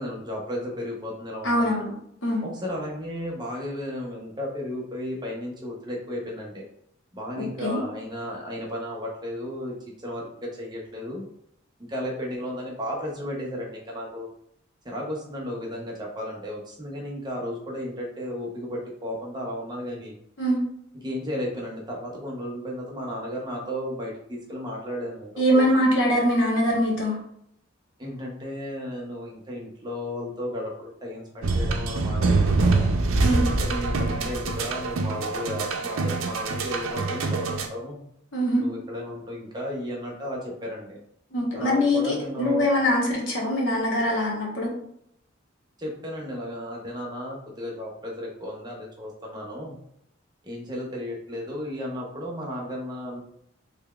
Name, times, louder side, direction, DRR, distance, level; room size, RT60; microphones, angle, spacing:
voice 1, 0.0-1.8 2.4-6.6 7.1-9.7 10.0-11.2 11.8-14.3 14.8-20.1 21.0-25.7 28.0-32.9 33.5-38.0 38.6-41.0 41.5-42.7 45.8-49.8 50.4-53.2, equal, 20° right, -2 dB, 0.7 m, -34 dB
voice 2, 1.4-1.9 2.2-2.4 7.4-7.8 20.4-20.6 25.4-27.2 33.2-33.5 38.3-38.6 41.3-44.7, equal, 65° left, -3 dB, 1.2 m, -23 dB
sound 1, 31.4-37.7, right 3 dB, 90° right, 0.5 m, -25 dB
3.9 x 3.2 x 2.3 m, 0.71 s
head